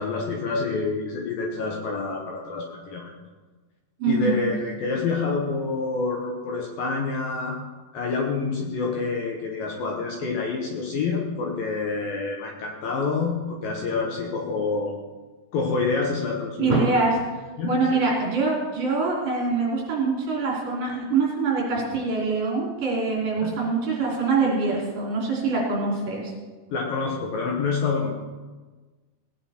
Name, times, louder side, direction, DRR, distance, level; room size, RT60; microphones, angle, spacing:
voice 1, 0.0-3.1 4.1-7.6 7.9-14.9 15.5-16.9 17.6-18.0 23.4-23.5 26.7-28.2, left 4 dB, 70° left, 1 dB, 2.4 m, -27 dB
voice 2, 4.0-4.4 16.6-17.1 17.6-26.3, right 4 dB, 55° right, -3 dB, 4.6 m, -24 dB
18.5 x 9.6 x 4.3 m, 1.3 s
omnidirectional pair, 5.0 m